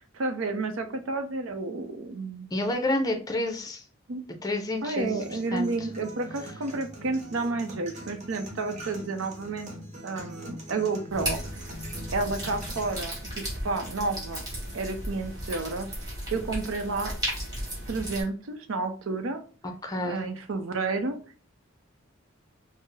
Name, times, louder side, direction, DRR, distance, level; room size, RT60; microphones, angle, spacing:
voice 1, 0.1-2.5 4.1-4.2 4.8-9.7 10.0-11.4 12.1-14.4 14.7-15.9 16.3-17.2 17.9-19.4 20.0-21.2, right 3 dB, 80° right, 7 dB, 0.6 m, -31 dB
voice 2, 2.5-3.8 4.4-5.1 5.5-5.9 19.8-20.2, left 1 dB, 20° left, 4 dB, 0.5 m, -29 dB
sound 1, 5.0-13.0, right 1 dB, 35° right, 0.8 m, -43 dB
sound 2, 11.1-18.2, right 1 dB, 20° right, 1.5 m, -35 dB
4.3 x 2.0 x 3.2 m, 0.39 s
head